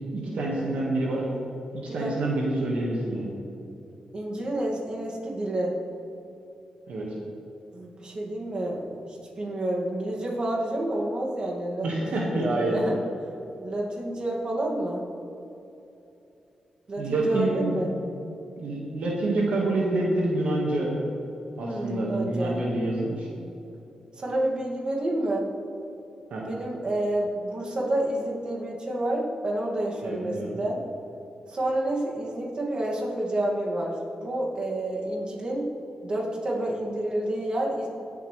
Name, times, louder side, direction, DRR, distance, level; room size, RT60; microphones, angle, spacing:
voice 1, 0.1-1.3 1.9-3.3 6.9-7.1 11.8-12.7 17.0-18.0 18.6-21.0 21.6-23.3 26.3-26.4 30.0-30.6, right 2 dB, 80° right, -3 dB, 1.9 m, -27 dB
voice 2, 4.1-5.7 7.7-8.9 9.4-11.9 12.6-13.0 13.6-15.0 16.9-17.9 21.6-22.6 24.2-25.5 26.4-30.8 31.5-35.7 36.0-37.9, right 1 dB, 45° right, -3 dB, 2.4 m, -29 dB
18.5 x 8.2 x 3.4 m, 2.9 s
cardioid pair, 80°, 2 cm